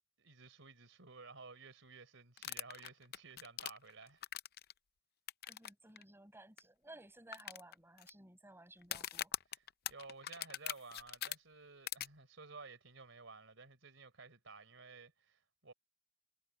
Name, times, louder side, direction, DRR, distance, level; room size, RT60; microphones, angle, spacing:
voice 1, 0.2-4.2 9.5-15.7, right 4 dB, 70° right, 4.5 m, -55 dB
sound 1, 2.4-4.7 5.3-5.7 6.0-6.1 6.6-6.7 7.3-8.1 8.8-11.4 11.9-12.1, left 12 dB, 50° left, 0.6 m, -42 dB
voice 2, 5.5-9.3, right 1 dB, 10° right, 6.2 m, -57 dB
head